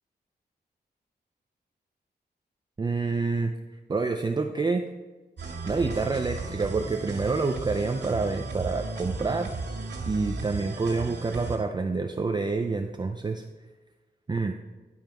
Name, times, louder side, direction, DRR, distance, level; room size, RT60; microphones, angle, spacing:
voice 1, 2.8-3.5 3.9-4.8 5.6-9.5 10.0-13.4 14.3-14.5, right 3 dB, 25° right, 4 dB, 0.5 m, -27 dB
sound 1, 5.4-11.6, right 3 dB, 85° right, 2.0 m, -35 dB
11.0 x 5.5 x 4.5 m, 1.2 s
wide cardioid pair, 120°, 18 cm